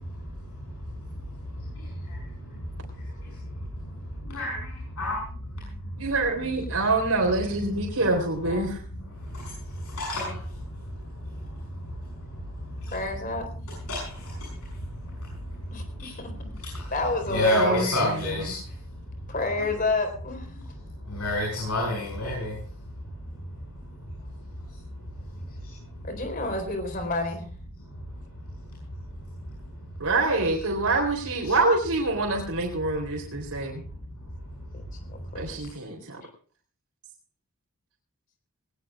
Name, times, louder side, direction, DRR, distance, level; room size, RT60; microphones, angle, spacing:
voice 1, 0.0-5.2 5.6-6.1 8.9-13.0 13.9-16.1 16.7-16.9 17.3-19.0 19.3-19.4 21.0-22.6 22.8-24.0 24.6-26.1 27.9-28.6 29.1-29.2 29.6-29.9 31.4-31.5 33.5-33.6 34.6-34.7 35.0-35.2, left 1 dB, 90° left, -4 dB, 7.3 m, -33 dB
voice 2, 6.0-8.8 17.5-18.5 30.0-33.8 35.4-36.2, right 2 dB, 90° right, 0 dB, 3.6 m, -26 dB
voice 3, 8.4-8.8 12.9-13.5 15.7-16.3 16.9-17.9 19.3-20.6 26.0-27.5 34.7-34.8 35.3-35.6, left 2 dB, 40° left, 5 dB, 4.1 m, -29 dB
20.5 x 18.5 x 2.5 m, 0.43 s
head